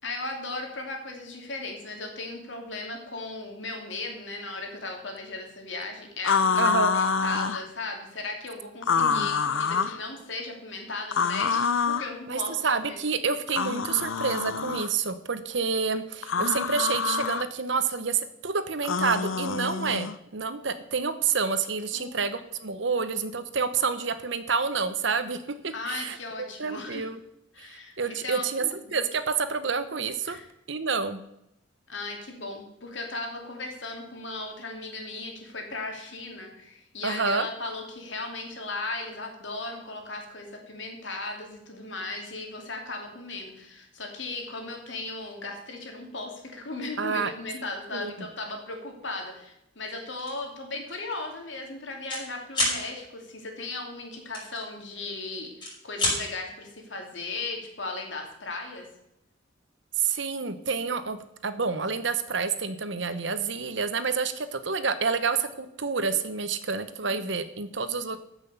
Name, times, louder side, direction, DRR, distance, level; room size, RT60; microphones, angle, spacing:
voice 1, 0.0-13.0 21.9-22.2 25.7-27.0 27.5-29.0 30.3-30.5 31.9-58.9 67.0-67.2, left 2 dB, 65° left, 2 dB, 2.8 m, -37 dB
sound 1, 6.2-7.6 8.8-10.0 11.1-12.1 13.5-14.9 16.2-17.4 18.8-20.1, left 5 dB, 80° left, 0.6 m, -26 dB
voice 2, 6.6-6.9 9.0-9.3 12.3-26.2 26.6-27.2 27.6-27.7 28.0-30.4 30.7-31.2 37.0-37.5 47.0-47.3 47.9-48.3 60.0-68.2, right 5 dB, 65° right, 11 dB, 1.0 m, -28 dB
sound 2, 50.2-50.4 50.9-51.1 51.3-52.2 52.5-52.8 54.3-55.1 55.5-56.2, left 2 dB, 25° left, 5.4 m, -28 dB
14.5 x 6.3 x 6.9 m, 0.82 s
head